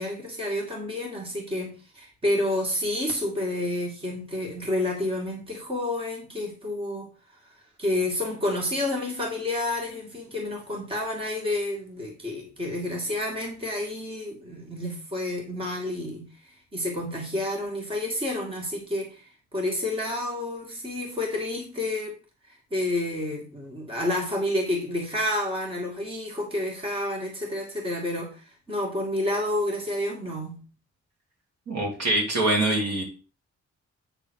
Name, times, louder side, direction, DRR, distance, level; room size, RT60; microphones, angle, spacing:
voice 1, 0.0-7.1 7.8-22.2 22.5-30.6, left 1 dB, 20° right, -1 dB, 2.0 m, -29 dB
voice 2, 31.7-33.0, right 1 dB, 65° right, 0 dB, 3.0 m, -24 dB
8.9 x 3.9 x 6.2 m, 0.35 s
wide cardioid pair, 175°, 29 cm